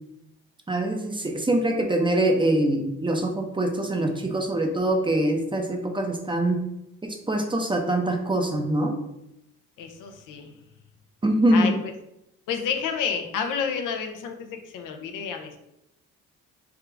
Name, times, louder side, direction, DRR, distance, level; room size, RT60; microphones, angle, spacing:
voice 1, 0.7-6.6 7.0-9.0 11.2-11.8, right 1 dB, 15° right, 3 dB, 0.7 m, -24 dB
voice 2, 9.8-10.5 11.5-11.7 12.5-15.6, left 7 dB, 80° left, 5 dB, 0.7 m, -30 dB
3.6 x 2.4 x 4.4 m, 0.85 s
cardioid pair, 85°, 31 cm